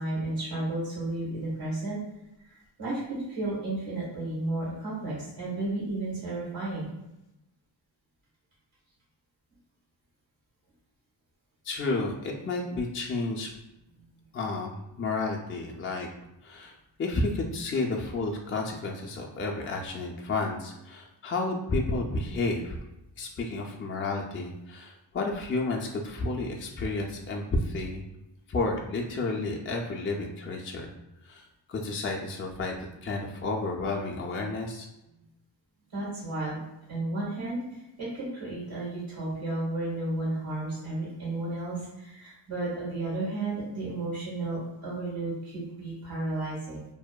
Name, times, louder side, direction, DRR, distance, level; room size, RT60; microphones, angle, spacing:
voice 1, 0.0-2.0 2.5-6.9 35.9-36.6 36.9-46.8, right 2 dB, 90° right, -8 dB, 1.0 m, -33 dB
voice 2, 11.6-13.5 14.3-16.1 16.4-16.7 17.0-22.8 23.2-28.1 28.5-30.9 31.2-32.7 33.0-34.9, left 2 dB, 30° left, 0 dB, 0.3 m, -31 dB
2.7 x 2.1 x 2.2 m, 0.91 s
cardioid pair, 50°, 47 cm